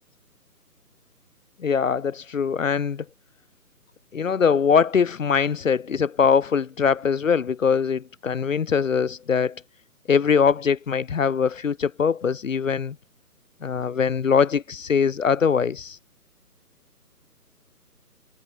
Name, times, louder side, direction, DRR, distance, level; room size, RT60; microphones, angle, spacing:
voice 1, 1.6-3.0 4.1-9.6 10.1-13.0 13.6-16.0, left 6 dB, 55° left, 1.1 m, -22 dB
figure-of-eight pair, 150°, 47 cm